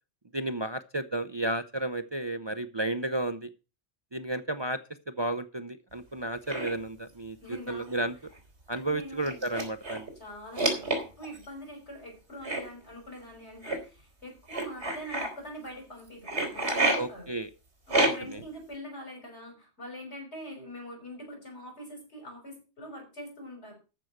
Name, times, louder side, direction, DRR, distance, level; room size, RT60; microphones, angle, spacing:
voice 1, 0.3-3.5 4.1-4.8 5.1-7.4 7.7-8.1 8.7-10.1 16.9-17.5 18.0-18.4, right 2 dB, 30° right, 9 dB, 0.6 m, -32 dB
sound 1, 6.5-6.7 7.9-8.0 8.3-8.4 9.2-10.1 10.6-11.4 12.4-12.6 13.6-13.8 14.5-15.3 16.3-17.0 17.9-18.4, right 2 dB, 85° right, 3.7 m, -28 dB
voice 2, 7.4-8.1 8.7-9.5 10.2-17.3 17.9-23.7, equal, 80° left, 2 dB, 6.3 m, -44 dB
14.0 x 6.2 x 6.5 m, 0.33 s
omnidirectional pair, 1.1 m